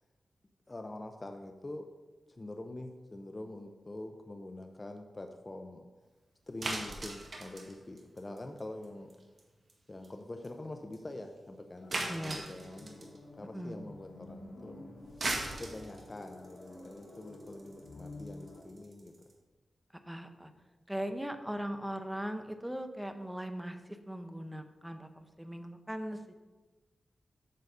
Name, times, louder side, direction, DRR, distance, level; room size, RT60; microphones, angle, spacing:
voice 1, 0.7-1.9 2.3-5.8 6.5-9.1 9.9-14.9 15.6-19.1, left 2 dB, 25° left, 4 dB, 0.7 m, -45 dB
sound 1, 6.6-8.8 9.1-9.4 9.7-9.8 10.0-10.1 10.4-10.5 10.9-11.0 11.9-13.2 15.0-19.3, right 2 dB, 55° right, 1.6 m, -38 dB
sound 2, 11.8-18.6, left 2 dB, 85° left, 2.0 m, -50 dB
voice 2, 12.1-12.5 13.5-13.8 20.1-20.5 20.9-26.3, equal, 5° right, 7 dB, 0.7 m, -39 dB
9.1 x 4.1 x 6.6 m, 1.2 s
wide cardioid pair, 95°, 0 cm